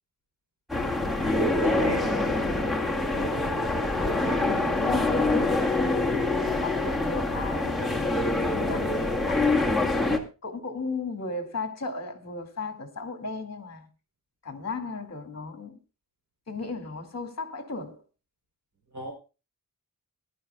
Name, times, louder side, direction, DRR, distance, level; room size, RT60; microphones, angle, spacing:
sound 1, 0.7-10.2, left 2 dB, ahead, 2.0 m, -25 dB
voice 1, 1.6-2.3 4.2-4.5 18.9-19.1, right 1 dB, 55° right, 3.9 m, -35 dB
voice 2, 3.0-3.5 3.9-5.7 6.3-10.0 10.4-13.9 14.4-15.8 16.5-18.0, left 3 dB, 45° left, 2.3 m, -36 dB
19.5 x 12.0 x 2.3 m
wide cardioid pair, 145°, 35 cm